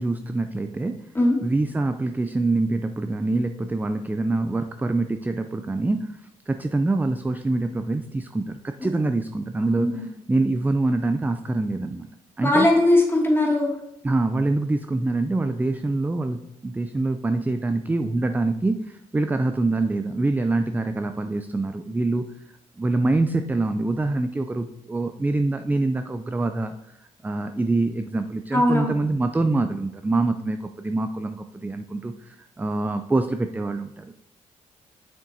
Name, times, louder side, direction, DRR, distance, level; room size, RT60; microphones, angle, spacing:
voice 1, 0.0-1.1 1.4-6.2 6.5-12.1 12.4-12.7 14.0-22.3 22.8-27.0 27.2-34.1, right 2 dB, 10° right, 8 dB, 0.4 m, -25 dB
voice 2, 12.4-13.8 28.5-28.9, left 1 dB, 15° left, -1 dB, 2.3 m, -19 dB
6.9 x 6.3 x 2.8 m, 0.82 s
supercardioid pair, 60°, 14 cm